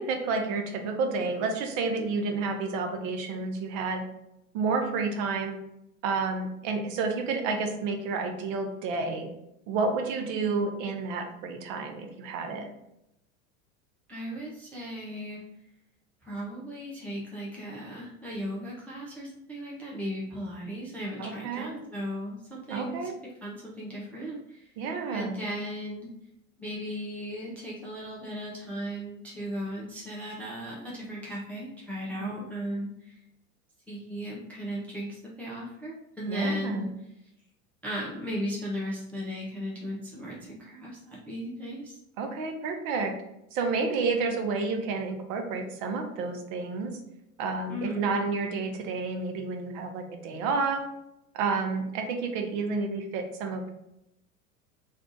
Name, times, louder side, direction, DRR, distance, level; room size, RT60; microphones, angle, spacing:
voice 1, 0.0-4.0 4.5-5.6 6.0-9.3 9.7-12.7 21.2-21.8 22.7-23.2 24.8-25.3 32.2-32.4 36.3-36.9 42.2-43.1 43.5-46.9 47.4-50.8 51.3-53.7, right 4 dB, 45° right, 4 dB, 0.7 m, -30 dB
voice 2, 14.1-15.4 16.2-23.1 23.4-24.7 25.1-26.1 26.6-33.2 33.9-36.9 37.8-42.0 47.7-48.1, equal, 5° left, -6 dB, 0.3 m, -36 dB
2.6 x 2.3 x 3.8 m, 0.83 s
hypercardioid pair, 85°, 41 cm